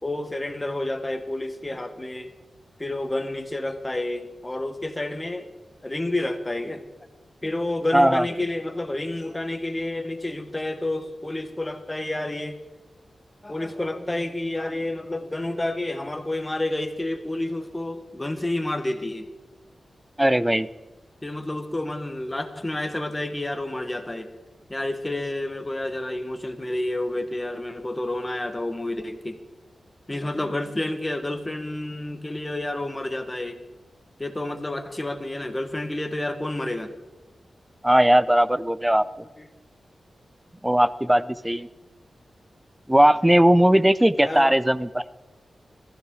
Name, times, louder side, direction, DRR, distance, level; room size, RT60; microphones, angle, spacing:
voice 1, 0.0-2.3 2.8-5.5 5.8-6.8 7.4-12.6 13.4-19.3 21.2-24.3 24.7-29.4 30.1-33.6 34.2-36.9 39.4-39.5 44.2-44.5, left 1 dB, 15° left, 7 dB, 1.2 m, -29 dB
voice 2, 7.9-8.2 20.2-20.7 37.8-39.1 40.6-41.7 42.9-45.0, right 1 dB, 5° right, 16 dB, 0.4 m, -18 dB
19.0 x 15.0 x 3.8 m, 1.1 s
wide cardioid pair, 140°, 0 cm